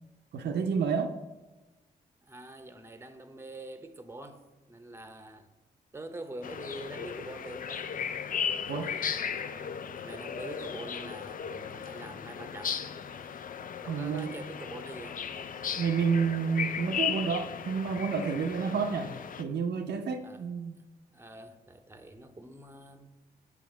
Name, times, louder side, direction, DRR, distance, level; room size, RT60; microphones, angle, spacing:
voice 1, 0.3-1.1 8.7-8.9 13.9-14.3 15.8-20.8, right 5 dB, 75° right, 0.6 m, -30 dB
voice 2, 2.2-5.5 5.9-7.9 8.7-12.8 13.8-15.3 20.2-20.4 21.1-23.1, right 2 dB, 15° right, 0.7 m, -45 dB
sound 1, 6.4-19.4, left 7 dB, 50° left, 0.4 m, -36 dB
6.4 x 3.5 x 5.7 m
supercardioid pair, 50°, 18 cm